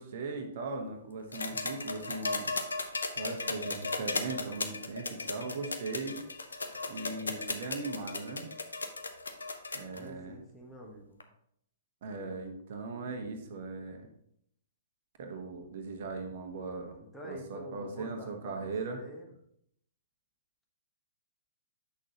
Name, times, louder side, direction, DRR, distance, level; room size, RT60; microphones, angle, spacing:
voice 1, 0.0-2.5 3.2-6.2 6.9-8.5 9.7-10.4 12.0-14.0 15.2-17.0 17.2-19.0, right 3 dB, 50° right, 4 dB, 1.1 m, -39 dB
sound 1, 1.3-10.0 11.2-11.3, left 3 dB, 75° left, 0.8 m, -36 dB
voice 2, 10.0-11.2 17.0-19.3, right 1 dB, 5° left, -1 dB, 1.2 m, -47 dB
8.4 x 6.3 x 2.9 m, 0.72 s
figure-of-eight pair, 115°, 0 cm